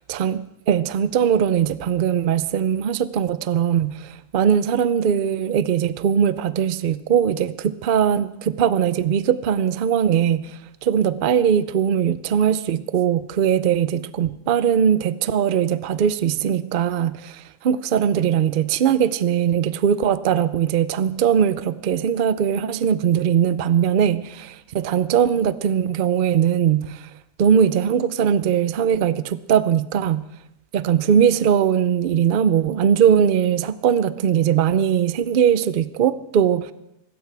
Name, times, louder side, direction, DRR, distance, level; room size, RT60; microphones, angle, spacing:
voice 1, 0.1-10.5 10.8-27.0 27.4-30.3 30.7-36.7, right 8 dB, 80° right, 14 dB, 0.4 m, -20 dB
24.5 x 13.0 x 3.4 m, 0.85 s
omnidirectional pair, 1.6 m